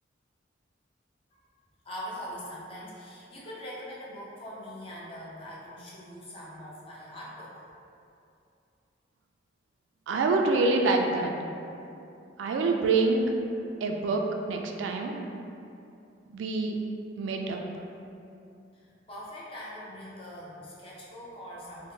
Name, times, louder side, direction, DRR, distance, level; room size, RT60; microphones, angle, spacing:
voice 1, 1.8-7.7 18.7-21.9, equal, 30° left, -6 dB, 0.5 m, -42 dB
voice 2, 10.1-11.3 12.4-13.3 13.8-15.3 16.3-16.7 17.2-17.6, right 3 dB, 85° right, 3 dB, 0.3 m, -26 dB
3.5 x 2.1 x 2.7 m, 2.6 s
head